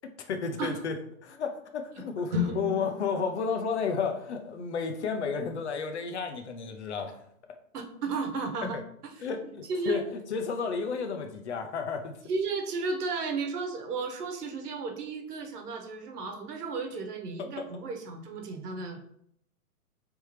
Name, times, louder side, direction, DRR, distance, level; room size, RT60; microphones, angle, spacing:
voice 1, 0.0-7.2 7.5-7.6 8.7-8.8 9.2-12.2 17.4-17.7, left 5 dB, 50° left, 7 dB, 0.6 m, -32 dB
sound 1, 2.3-6.4, left 4 dB, 30° right, 0.8 m, -37 dB
voice 2, 7.7-8.8 9.7-10.0 12.3-19.0, right 4 dB, 85° right, 4 dB, 1.1 m, -33 dB
4.3 x 3.4 x 3.1 m, 0.71 s
hypercardioid pair, 180°, 45 cm